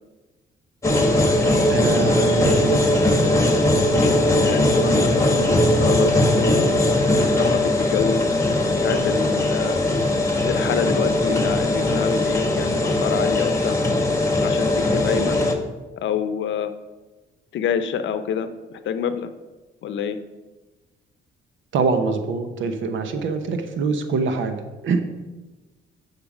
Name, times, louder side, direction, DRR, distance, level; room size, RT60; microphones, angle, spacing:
sound 1, 0.8-15.5, left 1 dB, 15° left, 1.4 m, -19 dB
voice 1, 1.7-3.0 11.3-11.4 21.7-25.0, right 4 dB, 75° right, 8 dB, 0.9 m, -24 dB
voice 2, 3.9-6.5 7.4-8.2 8.8-9.8 10.4-13.8 14.4-15.4 16.0-16.7 17.5-19.3 19.8-20.2, left 7 dB, 70° left, 10 dB, 0.7 m, -27 dB
10.5 x 5.8 x 5.0 m, 1.2 s
cardioid pair, 90°, 20 cm